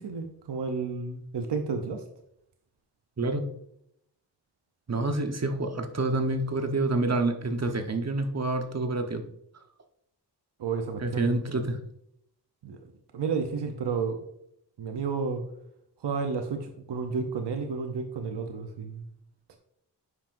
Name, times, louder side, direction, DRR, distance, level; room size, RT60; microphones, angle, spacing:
voice 1, 0.0-2.0 10.6-11.7 12.6-14.2 14.8-15.4 16.0-19.0, right 5 dB, 80° right, 5 dB, 0.8 m, -32 dB
voice 2, 3.2-3.5 4.9-9.2 11.0-11.8, right 2 dB, 40° right, 6 dB, 1.1 m, -27 dB
9.5 x 5.8 x 2.6 m, 0.75 s
cardioid pair, 55°, 41 cm